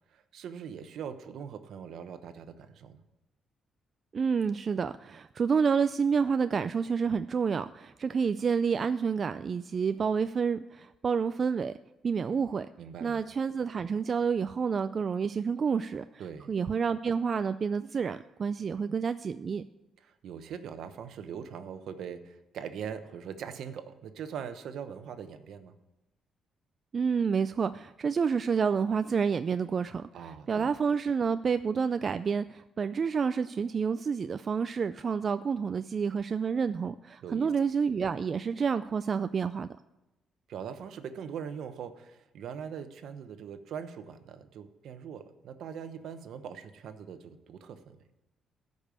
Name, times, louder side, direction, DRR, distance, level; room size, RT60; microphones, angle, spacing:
voice 1, 0.1-3.0 12.8-13.2 16.2-16.5 20.0-25.7 30.1-30.7 37.2-37.5 40.5-48.0, right 7 dB, 75° right, 9 dB, 0.9 m, -41 dB
voice 2, 4.1-11.7 12.0-12.7 13.0-16.0 16.5-19.6 26.9-39.7, right 6 dB, 45° right, 11 dB, 0.3 m, -29 dB
13.5 x 5.4 x 6.8 m, 1.0 s
cardioid pair, 90°, 0 cm